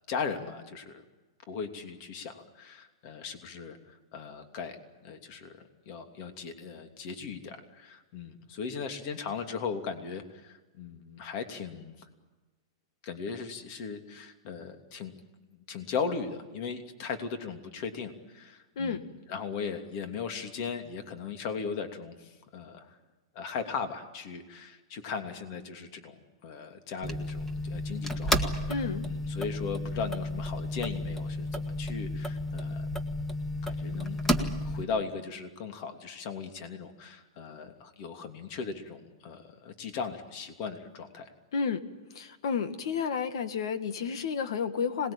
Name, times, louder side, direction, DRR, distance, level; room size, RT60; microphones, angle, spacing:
voice 1, 0.1-1.0 1.5-12.1 13.0-15.1 15.5-23.0 23.3-26.1 26.4-32.9 33.6-41.3, left 5 dB, 45° left, 7 dB, 2.9 m, -38 dB
sound 1, 27.0-34.8, left 1 dB, 10° left, 1.8 m, -32 dB
voice 2, 28.7-29.0 41.5-41.8 42.2-45.1, left 6 dB, 70° left, 11 dB, 2.0 m, -31 dB
26.0 x 20.0 x 8.9 m, 1.2 s
hypercardioid pair, 150°, 3 cm